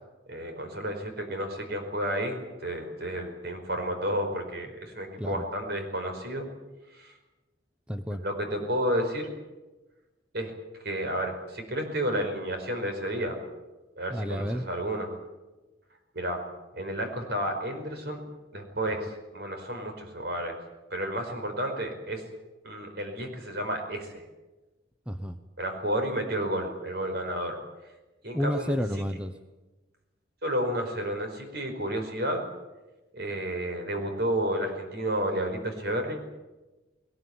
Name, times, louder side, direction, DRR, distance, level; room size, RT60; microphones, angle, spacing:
voice 1, 0.3-6.5 6.9-7.1 8.2-9.3 10.3-10.5 10.8-13.4 14.0-15.1 16.1-16.4 16.7-18.2 18.5-20.6 20.9-22.2 22.6-24.2 25.6-27.6 28.2-28.8 30.4-32.4 33.1-36.2, right 1 dB, 60° right, 5 dB, 5.0 m, -31 dB
voice 2, 7.9-8.2 14.1-14.6 25.1-25.4 28.3-29.3, equal, 5° right, 8 dB, 0.9 m, -30 dB
20.5 x 19.5 x 9.6 m, 1.1 s
head